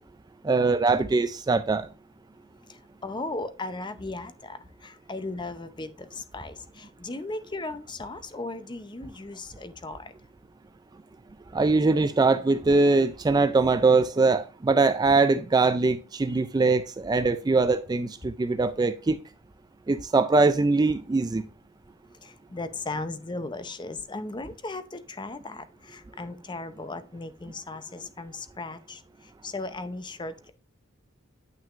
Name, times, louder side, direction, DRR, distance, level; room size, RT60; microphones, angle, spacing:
voice 1, 0.4-1.9 11.5-19.2 19.9-21.4, right 3 dB, 20° right, 0.3 m, -22 dB
voice 2, 3.0-10.1 22.2-29.0 29.4-30.5, left 2 dB, 20° left, 0.6 m, -36 dB
9.2 x 5.9 x 2.5 m
head